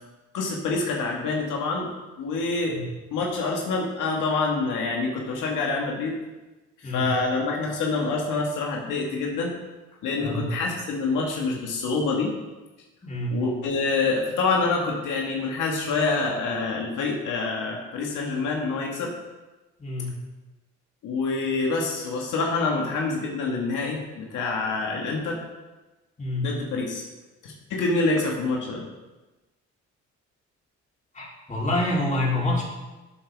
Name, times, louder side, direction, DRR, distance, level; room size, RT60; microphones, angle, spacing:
voice 1, 0.3-1.9 2.2-2.8 3.1-6.1 6.8-9.5 10.0-12.3 13.3-19.1 21.0-25.4 26.4-27.1 27.4-28.8, left 3 dB, 85° left, -1 dB, 1.8 m, -26 dB
voice 2, 13.0-13.4 19.8-20.2 26.2-26.5 31.2-32.6, left 1 dB, 25° left, -5 dB, 3.7 m, -27 dB
12.5 x 8.0 x 3.6 m, 1.1 s
cardioid pair, 90°, 30 cm